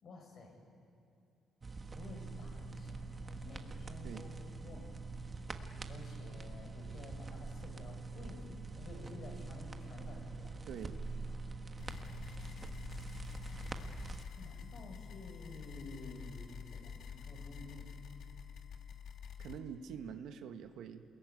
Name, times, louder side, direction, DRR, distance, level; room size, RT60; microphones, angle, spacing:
voice 1, 0.0-0.6 1.9-4.8 5.9-10.6 14.4-17.9, left 2 dB, 55° left, 2 dB, 6.4 m, -51 dB
sound 1, 1.6-14.2, right 3 dB, 30° right, 1.4 m, -45 dB
voice 2, 10.7-11.0 19.4-21.0, right 8 dB, 85° right, 6 dB, 1.4 m, -45 dB
sound 2, 11.8-19.6, left 7 dB, 70° left, 1.8 m, -48 dB
28.0 x 21.0 x 9.6 m, 2.6 s
cardioid pair, 120°, 0 cm